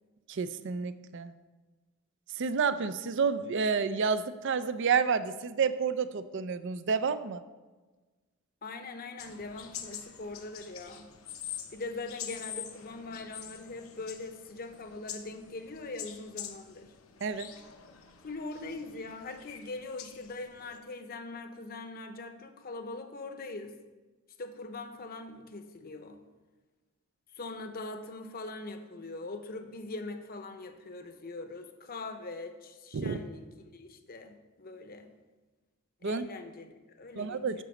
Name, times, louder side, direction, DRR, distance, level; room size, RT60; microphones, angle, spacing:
voice 1, 0.3-1.3 2.4-7.4 17.2-17.5 32.9-33.2 36.0-36.3 37.2-37.6, right 5 dB, 55° right, 13 dB, 0.5 m, -30 dB
voice 2, 8.6-11.1 11.7-16.9 18.2-23.7 24.4-26.2 27.3-33.4 33.7-35.1 36.0-37.6, left 3 dB, 45° left, 7 dB, 0.8 m, -42 dB
sound 1, 9.2-20.8, left 9 dB, 70° left, 0.8 m, -46 dB
10.5 x 4.1 x 6.9 m, 1.3 s
head